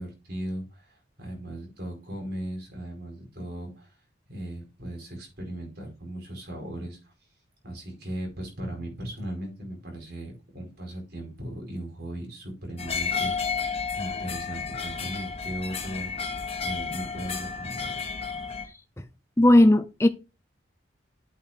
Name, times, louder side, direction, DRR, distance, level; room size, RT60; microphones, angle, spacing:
voice 1, 0.0-3.9 4.3-7.1 7.6-16.3 16.6-17.9, right 1 dB, 55° right, 4.8 m, -37 dB
sound 1, 12.8-18.7, left 5 dB, 30° left, 1.4 m, -32 dB
voice 2, 19.4-20.1, left 1 dB, 15° left, 0.5 m, -17 dB
8.3 x 4.5 x 5.0 m
head